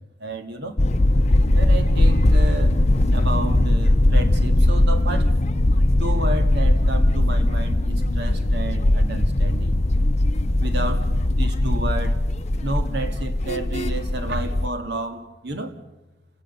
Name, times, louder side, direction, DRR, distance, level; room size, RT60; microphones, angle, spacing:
voice 1, 0.2-0.8 1.5-2.8 3.1-5.3 6.0-9.8 10.6-12.2 12.6-15.7, right 2 dB, 65° right, 2.0 m, -31 dB
sound 1, 0.8-14.7, left 1 dB, 40° left, 0.8 m, -19 dB
30.0 x 16.5 x 6.7 m
head